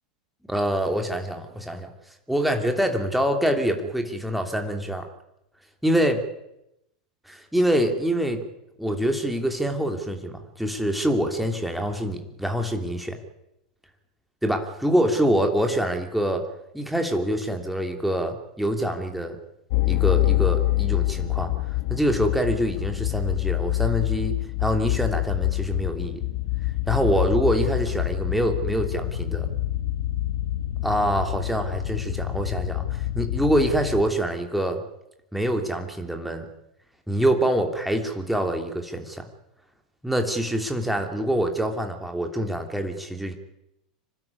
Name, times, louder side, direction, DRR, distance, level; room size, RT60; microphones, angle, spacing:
voice 1, 0.5-1.9 2.3-5.1 5.8-6.2 7.3-8.4 8.8-13.2 14.4-16.4 16.7-19.4 19.9-21.5 21.9-26.2 26.9-29.5 30.8-34.8 35.3-36.5 37.1-39.2 40.0-43.3, right 1 dB, ahead, 4 dB, 3.1 m, -25 dB
sound 1, 19.7-34.1, left 17 dB, 60° left, 1.4 m, -26 dB
26.5 x 12.5 x 9.7 m, 0.85 s
figure-of-eight pair, 90°, 4 cm